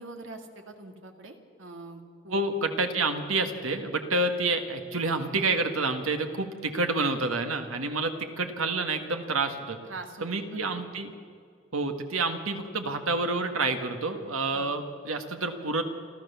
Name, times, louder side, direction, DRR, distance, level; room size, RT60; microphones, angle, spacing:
voice 1, 0.0-2.4 9.8-10.8 14.5-14.8, right 3 dB, 70° right, 5 dB, 2.1 m, -44 dB
voice 2, 2.3-9.8 10.2-11.1 11.7-15.8, right 3 dB, 90° right, 6 dB, 1.8 m, -28 dB
30.0 x 12.5 x 7.1 m, 2.2 s
head